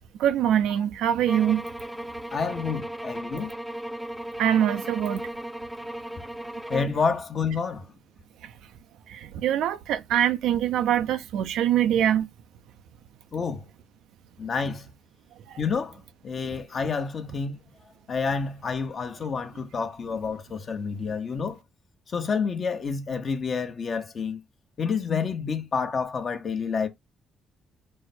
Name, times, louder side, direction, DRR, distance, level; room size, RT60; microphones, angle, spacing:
voice 1, 0.2-1.6 3.4-3.5 4.4-5.2 9.1-12.3, right 10 dB, 85° right, 0.5 m, -23 dB
sound 1, 1.3-7.0, right 1 dB, 5° right, 0.4 m, -36 dB
voice 2, 2.3-3.5 6.7-7.8 13.3-13.6 14.4-14.9 15.6-16.0 16.2-17.6 18.1-21.6 22.1-24.4 24.8-26.9, left 5 dB, 45° left, 0.9 m, -29 dB
4.5 x 2.1 x 4.2 m
cardioid pair, 90°, 0 cm